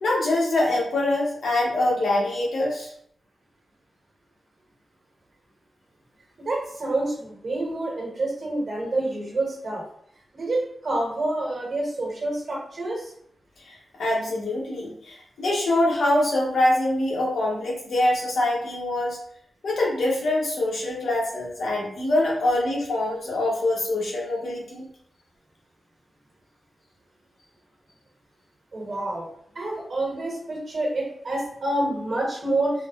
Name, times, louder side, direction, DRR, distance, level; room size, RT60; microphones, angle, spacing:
voice 1, 0.0-2.9 13.7-19.2 19.6-24.8, left 1 dB, 85° left, -3 dB, 0.9 m, -24 dB
voice 2, 6.4-9.8 10.3-13.1 28.7-29.3 29.5-32.7, right 2 dB, 60° right, -3 dB, 1.3 m, -28 dB
3.5 x 2.0 x 2.4 m, 0.66 s
cardioid pair, 80°, 0 cm